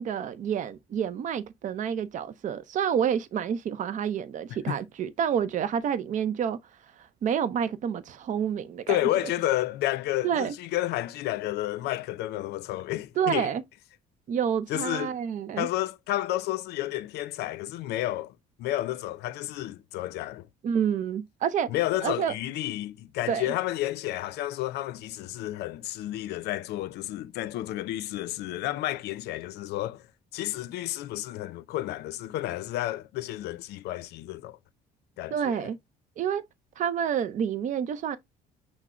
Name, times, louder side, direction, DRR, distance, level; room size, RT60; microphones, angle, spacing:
voice 1, 0.0-6.6 7.0-9.0 10.2-10.5 13.2-13.6 14.3-15.7 20.6-21.7 22.0-22.3 23.3-23.5 35.3-35.8 36.2-36.4 36.8-38.2, right 8 dB, 50° right, 0.5 m, -28 dB
voice 2, 8.9-13.5 14.7-15.2 15.6-20.5 21.7-30.1 30.3-34.6 35.2-35.7, left 15 dB, 80° left, 0.5 m, -31 dB
6.0 x 2.0 x 4.3 m
cardioid pair, 110°, 17 cm